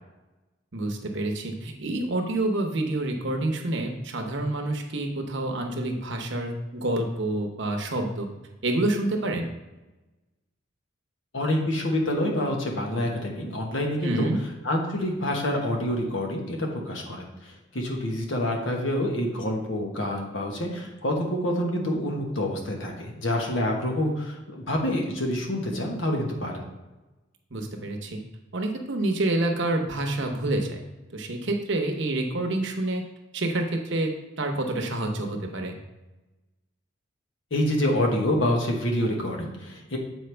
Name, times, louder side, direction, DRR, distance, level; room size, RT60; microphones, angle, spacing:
voice 1, 0.7-8.3 8.6-9.5 14.0-14.4 27.5-28.2 28.5-30.8 31.1-33.0 33.3-35.8, right 2 dB, 60° right, 3 dB, 0.9 m, -28 dB
voice 2, 11.3-14.3 14.6-17.3 17.7-26.6 37.5-40.0, left 1 dB, 70° left, 1 dB, 1.2 m, -27 dB
7.8 x 4.6 x 3.4 m, 1.1 s
head